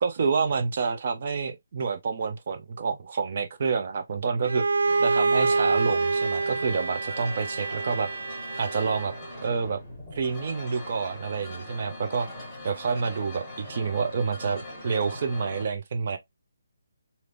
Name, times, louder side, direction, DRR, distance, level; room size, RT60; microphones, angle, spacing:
voice 1, 0.0-4.7 5.0-8.1 8.6-9.1 9.4-9.8 10.1-12.3 12.6-16.2, right 5 dB, 45° right, 0.8 m, -28 dB
Bowed string instrument, 4.4-9.3, right 3 dB, 80° right, 0.4 m, -26 dB
sound 1, 4.9-15.7, left 1 dB, 10° left, 1.6 m, -41 dB
3.4 x 2.8 x 2.6 m
hypercardioid pair, 160°, 0 cm